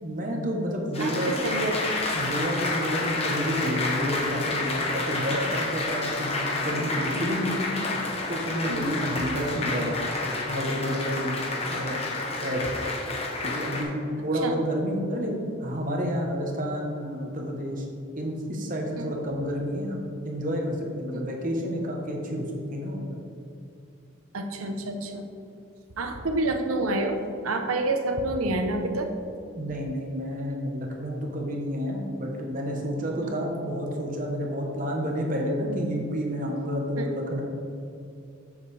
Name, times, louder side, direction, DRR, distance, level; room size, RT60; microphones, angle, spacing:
voice 1, 0.0-1.3 2.1-7.8 8.3-10.0 10.5-11.4 11.7-12.0 12.4-12.6 13.4-17.8 18.2-20.0 20.2-23.0 29.5-37.4, equal, 40° right, 1 dB, 1.0 m, -30 dB
Applause, 0.9-13.8, left 2 dB, 30° left, 0.9 m, -29 dB
voice 2, 1.0-1.9 8.7-8.9 14.4-14.5 19.0-19.1 21.1-21.2 24.3-25.2 26.0-29.1 33.2-33.3 37.0-37.1, right 2 dB, 90° right, 5 dB, 0.8 m, -28 dB
7.7 x 7.0 x 3.3 m, 2.7 s
head